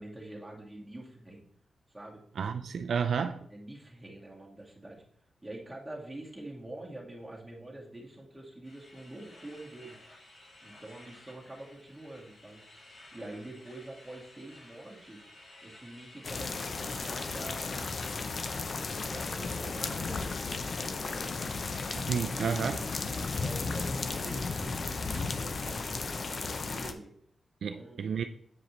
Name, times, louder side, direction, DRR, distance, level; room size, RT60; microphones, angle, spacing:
voice 1, 0.0-1.4 1.9-2.2 3.5-5.0 5.4-10.0 10.6-12.6 13.1-15.3 15.6-17.9 18.5-21.6 22.3-27.1 27.7-28.3, right 1 dB, 5° right, 2.0 m, -46 dB
voice 2, 2.4-3.5 22.1-22.8 27.6-28.2, right 6 dB, 75° right, 0.4 m, -31 dB
sound 1, 8.6-18.2, left 1 dB, 70° left, 3.0 m, -55 dB
sound 2, 16.2-26.9, left 4 dB, 45° left, 0.6 m, -34 dB
8.4 x 5.0 x 3.1 m
wide cardioid pair, 115°, 0 cm